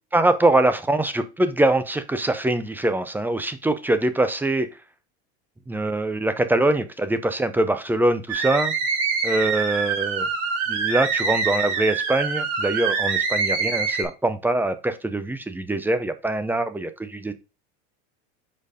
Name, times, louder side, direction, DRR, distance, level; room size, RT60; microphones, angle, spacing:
voice 1, 0.1-4.7 5.7-8.7 9.2-10.3 10.7-17.3, right 2 dB, 5° right, 0.4 m, -23 dB
sound 1, 8.3-14.0, right 5 dB, 70° right, 2.6 m, -25 dB
5.2 x 4.5 x 4.8 m
supercardioid pair, 130°, 34 cm